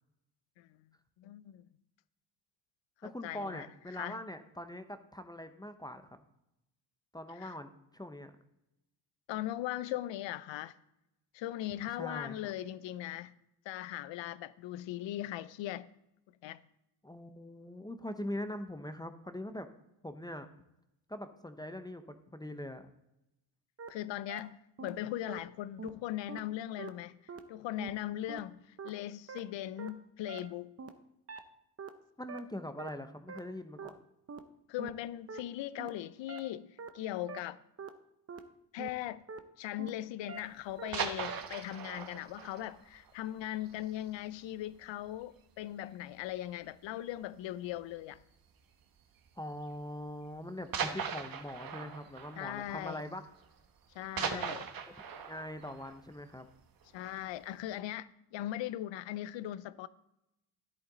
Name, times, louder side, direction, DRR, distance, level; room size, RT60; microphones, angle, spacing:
voice 1, 1.2-1.6 3.0-3.7 3.9-4.2 7.4-7.5 9.3-10.7 11.3-13.4 13.7-15.9 16.4-16.6 23.9-27.2 27.5-30.7 34.7-37.6 38.7-39.2 39.6-48.2 52.4-53.0 53.9-54.6 56.9-59.9, left 13 dB, 70° left, 0.6 m, -39 dB
voice 2, 3.0-6.2 7.1-8.3 12.0-12.5 17.0-19.7 20.0-20.5 21.1-22.9 32.2-34.0 49.4-53.2 54.2-54.6 55.2-56.5, left 1 dB, 10° left, 0.7 m, -42 dB
sound 1, 23.8-23.9 24.3-24.4 24.8-24.9 25.3-25.4 25.8-25.9 26.3-26.4 26.8-26.9 27.3-27.4 27.8-27.9 28.3-28.4 28.8-28.9 29.3-29.4 29.8-29.9 30.3-30.4 30.8-30.9 31.3-31.4 31.8-31.9 32.3-32.4 32.8-32.9 33.3-33.4 33.8-33.9 34.3-34.4 34.8-34.9 35.3-35.4 35.8-35.9 36.3-36.4 36.8-36.9 37.3-37.4 37.8-37.9 38.3-38.4 38.8-38.9 39.3-39.4 39.8-39.9 40.3-40.4 40.8-40.9 41.3-41.4, right 5 dB, 30° right, 0.9 m, -43 dB
sound 2, 40.7-44.2 44.5-44.6 45.1-45.3 45.6-45.7 46.5-46.9 48.1-48.4 49.3-49.4 50.7-53.5 53.8-56.9 57.4-57.5, right 6 dB, 50° right, 1.2 m, -40 dB
10.5 x 8.6 x 3.9 m
cardioid pair, 75°, 46 cm